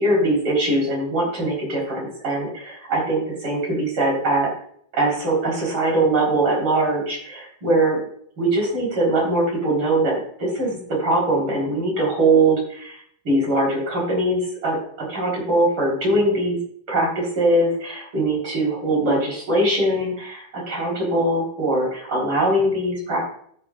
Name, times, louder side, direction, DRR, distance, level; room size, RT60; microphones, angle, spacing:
voice 1, 0.0-4.5 4.9-8.0 8.4-13.0 13.2-14.8 15.1-16.6 16.9-23.2, right 1 dB, 85° right, -4 dB, 4.8 m, -21 dB
17.0 x 6.1 x 2.5 m, 0.64 s
omnidirectional pair, 2.2 m